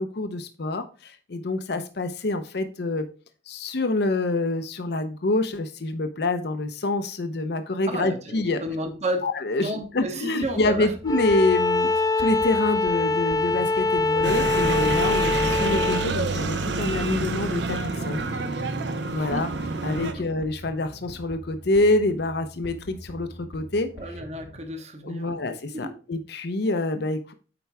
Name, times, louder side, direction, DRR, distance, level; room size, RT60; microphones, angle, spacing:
voice 1, 0.0-3.1 3.5-8.6 9.2-11.9 12.2-17.8 18.0-18.2 19.1-19.5 19.8-23.3 23.5-23.9 25.0-27.3, left 2 dB, 65° left, 8 dB, 0.7 m, -26 dB
voice 2, 7.8-9.3 9.6-10.9 19.2-19.5 20.1-20.3 23.9-25.4 25.7-25.9, right 1 dB, 40° right, 6 dB, 1.1 m, -32 dB
sound 1, 10.4-24.6, equal, 85° left, 1.3 m, -43 dB
Bowed string instrument, 11.1-16.1, left 3 dB, 20° left, 0.4 m, -23 dB
sound 2, 14.2-20.1, right 3 dB, 80° right, 0.9 m, -28 dB
8.8 x 4.6 x 3.4 m, 0.36 s
head